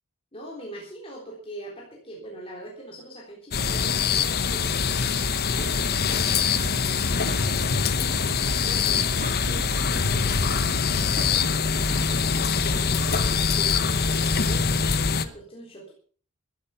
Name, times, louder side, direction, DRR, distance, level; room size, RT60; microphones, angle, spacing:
voice 1, 0.3-12.2 12.5-15.9, right 1 dB, 25° left, -2 dB, 3.7 m, -43 dB
sound 1, 3.5-15.2, left 5 dB, 50° left, 1.0 m, -24 dB
sound 2, 5.6-13.4, right 2 dB, 45° right, 2.4 m, -42 dB
14.5 x 11.0 x 5.7 m, 0.43 s
head